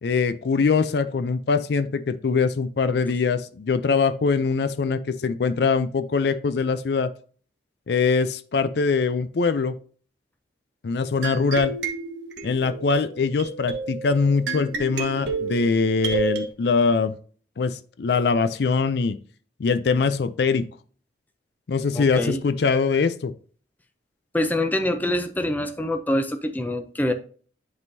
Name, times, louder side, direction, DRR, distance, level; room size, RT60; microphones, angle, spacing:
voice 1, 0.0-7.1 7.9-9.8 10.8-11.7 12.4-17.1 17.6-19.2 19.6-20.7 21.7-23.3, left 4 dB, 60° left, 0.4 m, -22 dB
sound 1, 11.2-16.5, right 4 dB, 75° right, 1.1 m, -30 dB
voice 2, 21.9-22.4 24.3-27.1, left 1 dB, 10° left, 0.5 m, -25 dB
10.5 x 3.7 x 2.7 m
head